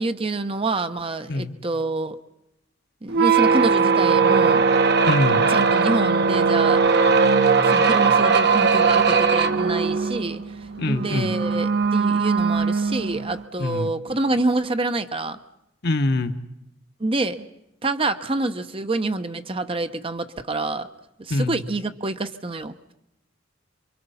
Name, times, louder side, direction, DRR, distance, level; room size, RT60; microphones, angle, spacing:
voice 1, 0.0-2.2 3.0-4.6 5.5-6.9 7.7-10.4 10.9-15.4 17.0-17.5 17.8-20.9 21.2-22.9, right 2 dB, 25° right, 9 dB, 0.8 m, -27 dB
sound 1, 3.1-13.4, right 5 dB, 55° right, 1.2 m, -19 dB
voice 2, 5.0-5.5 10.8-11.3 13.6-13.9 15.8-16.3 21.3-21.6, left 2 dB, 50° left, 8 dB, 1.1 m, -23 dB
27.5 x 24.5 x 5.7 m, 0.87 s
head